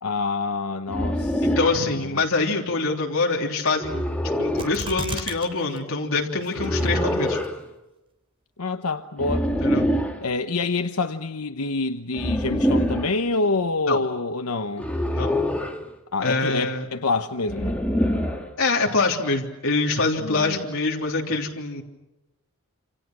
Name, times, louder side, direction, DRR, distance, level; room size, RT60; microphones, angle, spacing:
voice 1, 0.0-1.5 1.9-2.2 6.6-7.1 8.6-9.5 10.2-14.9 16.1-17.8 20.2-20.6, left 3 dB, 80° left, 8 dB, 1.0 m, -27 dB
sound 1, 0.9-1.8 3.8-4.8 6.5-7.5 9.2-10.2 12.1-13.1 14.8-15.8 17.5-18.5, equal, 5° left, 2.4 m, -24 dB
voice 2, 1.4-4.0 4.4-7.4 9.6-9.9 13.9-14.0 15.1-15.4 16.2-16.9 18.6-21.8, left 3 dB, 65° left, -1 dB, 3.3 m, -24 dB
sound 2, 4.6-5.5 5.8-5.9 6.4-6.9 7.4-7.5, right 2 dB, 25° right, 3.3 m, -32 dB
28.0 x 27.5 x 6.2 m, 0.93 s
head